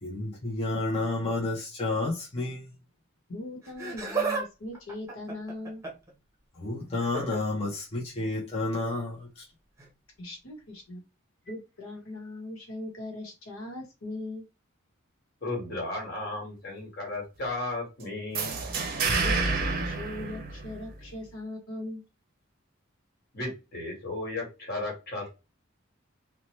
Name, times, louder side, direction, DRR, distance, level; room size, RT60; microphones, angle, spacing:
voice 1, 0.0-2.7 6.5-9.4, left 2 dB, 30° left, 0.6 m, -31 dB
voice 2, 3.3-5.8 10.2-11.0 11.5-14.4 19.2-22.0, left 1 dB, 90° left, 0.9 m, -39 dB
Laughter, 3.6-4.5 4.7-6.1 7.0-7.4 8.7-8.9 9.8-9.9, right 4 dB, 15° right, 0.8 m, -33 dB
voice 3, 15.4-18.6 23.3-25.3, left 2 dB, 50° left, 1.6 m, -34 dB
sound 1, 18.3-21.1, right 4 dB, 45° right, 0.6 m, -29 dB
2.8 x 2.1 x 3.0 m
head